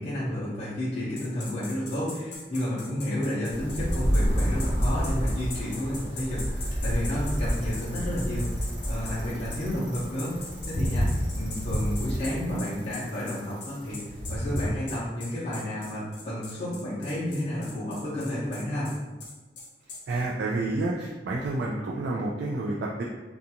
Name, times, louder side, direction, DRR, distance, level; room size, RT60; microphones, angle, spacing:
voice 1, 0.0-8.6 8.9-10.3 10.7-11.1 11.3-14.0 14.3-18.9, left 1 dB, 40° left, -10 dB, 0.6 m, -31 dB
sound 1, 1.2-9.2 9.5-9.6 9.9-20.0, left 3 dB, 75° left, 0.7 m, -41 dB
sound 2, 3.5-14.5, equal, 30° right, 0.8 m, -30 dB
Bicycle, 6.6-14.7, equal, 90° right, 1.1 m, -31 dB
voice 2, 20.1-23.0, right 2 dB, 70° right, -3 dB, 0.3 m, -29 dB
2.5 x 2.3 x 2.8 m, 1.2 s
head